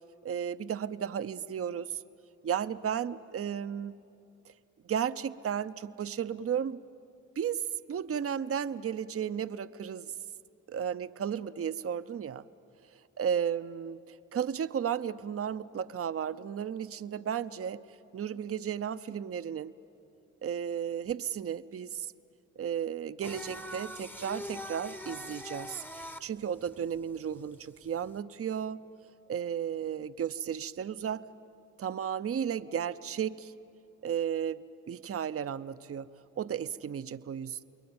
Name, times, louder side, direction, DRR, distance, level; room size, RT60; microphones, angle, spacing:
voice 1, 0.2-2.0 2.4-3.9 4.8-6.8 7.4-10.2 10.7-12.4 13.2-17.8 18.1-19.7 20.4-22.1 22.6-28.8 29.3-31.2 31.8-33.5 34.0-36.1 36.4-37.6, right 8 dB, 45° right, 13 dB, 0.7 m, -34 dB
Singing, 23.2-28.2, left 1 dB, 5° left, 0.9 m, -43 dB
28.5 x 21.5 x 8.7 m, 2.6 s
cardioid pair, 60°, 31 cm